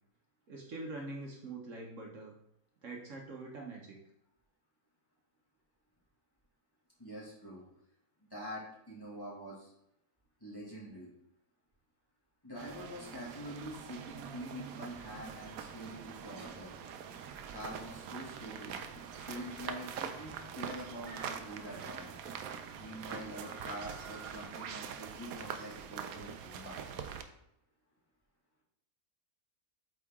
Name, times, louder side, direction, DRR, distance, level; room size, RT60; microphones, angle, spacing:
voice 1, 0.5-2.3 2.8-4.0, right 2 dB, 60° right, 0 dB, 1.3 m, -44 dB
voice 2, 7.0-7.6 8.3-9.7 10.4-11.1 12.4-16.7 17.5-22.1 22.8-26.8, equal, 15° left, -6 dB, 2.0 m, -45 dB
sound 1, 12.6-27.2, right 7 dB, 80° right, 1.0 m, -44 dB
sound 2, 14.9-24.5, right 3 dB, 40° right, 0.5 m, -56 dB
8.3 x 3.8 x 3.6 m, 0.81 s
omnidirectional pair, 1.5 m